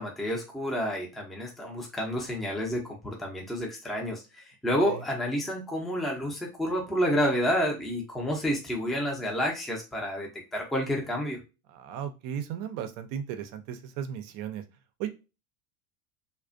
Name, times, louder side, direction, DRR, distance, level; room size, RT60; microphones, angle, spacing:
voice 1, 0.0-4.2 4.6-11.4, equal, ahead, -1 dB, 0.5 m, -29 dB
voice 2, 11.7-14.6 15.0-15.1, right 9 dB, 45° right, 8 dB, 0.5 m, -36 dB
2.3 x 2.1 x 2.4 m, 0.30 s
hypercardioid pair, 95°, 45 cm